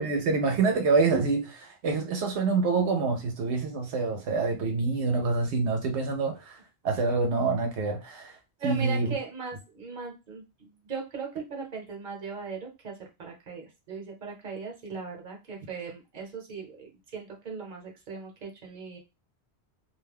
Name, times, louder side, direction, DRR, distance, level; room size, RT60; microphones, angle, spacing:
voice 1, 0.0-6.6 6.8-8.4 8.6-9.1, right 4 dB, 85° right, 0.9 m, -26 dB
voice 2, 8.6-19.0, right 5 dB, 45° right, 0.9 m, -38 dB
2.5 x 2.1 x 3.3 m
omnidirectional pair, 1.1 m